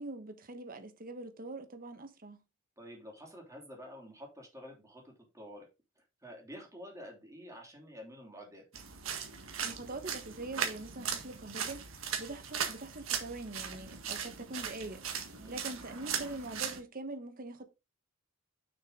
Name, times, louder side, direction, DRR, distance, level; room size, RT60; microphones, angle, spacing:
voice 1, 0.0-2.4 9.6-17.6, right 2 dB, 45° right, 1.3 m, -43 dB
voice 2, 2.8-5.7 6.0-8.6 15.4-15.6, equal, 15° right, 3.1 m, -49 dB
sound 1, 8.7-16.8, right 7 dB, 75° right, 1.7 m, -38 dB
6.6 x 6.5 x 3.8 m
head